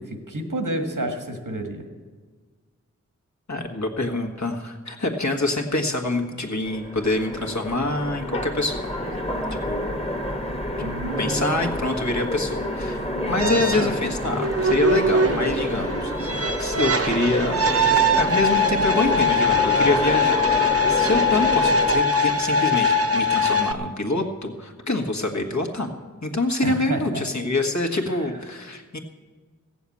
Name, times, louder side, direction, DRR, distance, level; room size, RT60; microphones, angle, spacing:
voice 1, 0.0-1.8 10.8-11.7 13.2-13.9 26.6-27.2 28.2-28.3, right 1 dB, 85° right, 5 dB, 1.7 m, -30 dB
voice 2, 3.5-9.2 9.6-9.9 11.2-17.6 18.1-25.9 26.2-29.0, left 2 dB, 60° left, 3 dB, 1.6 m, -26 dB
Train, 6.6-22.0, left 1 dB, 20° left, 1.3 m, -29 dB
sound 1, 13.4-23.7, left 2 dB, 45° right, 0.8 m, -22 dB
15.5 x 7.1 x 8.5 m, 1.4 s
wide cardioid pair, 45°, 31 cm